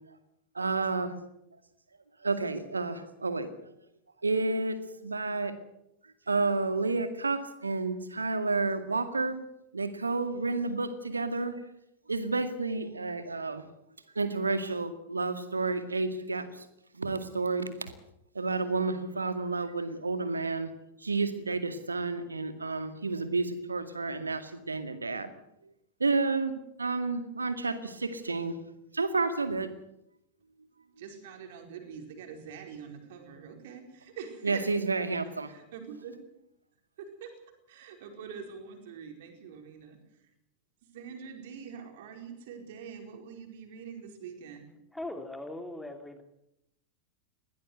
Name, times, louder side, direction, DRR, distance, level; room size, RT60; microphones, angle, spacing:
voice 1, 0.5-1.2 2.2-3.5 4.2-5.5 6.3-9.4 9.7-11.6 12.1-13.6 14.1-16.7 16.9-17.9 18.3-20.7 21.0-25.3 26.0-26.5 26.8-28.6 28.9-29.7 34.4-35.5, right 3 dB, 80° right, 10 dB, 2.1 m, -30 dB
voice 2, 31.0-34.6 35.4-36.1 37.0-37.3 37.7-40.3 40.9-44.7, right 7 dB, 55° right, 4 dB, 4.7 m, -44 dB
voice 3, 44.9-46.2, left 1 dB, 5° left, 6 dB, 2.8 m, -39 dB
21.5 x 17.0 x 8.0 m, 0.83 s
figure-of-eight pair, 90°, 0 cm